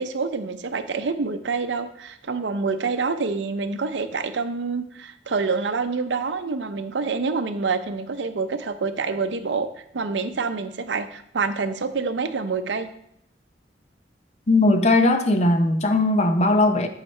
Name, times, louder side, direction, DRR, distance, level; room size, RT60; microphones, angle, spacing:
voice 1, 0.0-9.7 9.9-12.9, right 4 dB, 80° right, 10 dB, 0.6 m, -27 dB
voice 2, 14.5-16.9, left 2 dB, 40° left, 7 dB, 0.6 m, -19 dB
8.4 x 5.7 x 3.2 m, 0.71 s
head